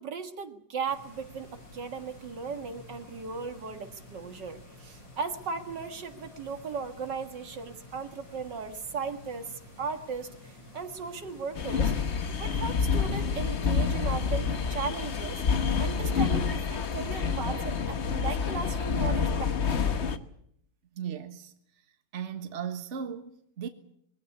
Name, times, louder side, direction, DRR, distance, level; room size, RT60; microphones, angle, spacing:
voice 1, 0.0-11.9 12.4-15.4 15.8-20.0, right 5 dB, 70° right, 2.4 m, -37 dB
sound 1, 0.9-17.2, left 1 dB, 85° left, 8.6 m, -51 dB
sound 2, 11.5-20.2, left 5 dB, 45° left, 1.2 m, -28 dB
voice 2, 20.9-21.5 22.1-23.7, right 7 dB, 40° right, 1.6 m, -36 dB
21.5 x 16.5 x 9.7 m
omnidirectional pair, 2.0 m